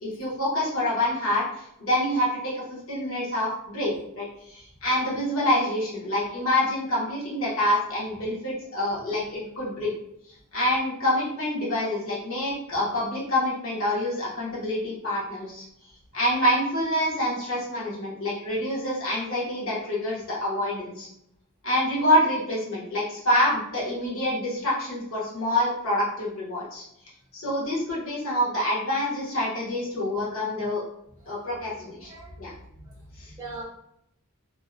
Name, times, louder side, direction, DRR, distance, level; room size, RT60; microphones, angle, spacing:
voice 1, 0.0-1.4 1.8-2.5 2.9-9.9 10.5-15.6 16.1-21.1 21.6-26.8 27.3-30.8 31.3-32.1 32.4-32.5 33.2-33.3, left 1 dB, 65° left, -5 dB, 1.0 m, -26 dB
voice 2, 31.8-32.3 32.8-32.9 33.3-33.6, right 2 dB, 20° right, -6 dB, 0.5 m, -41 dB
2.7 x 2.0 x 2.4 m, 0.79 s
head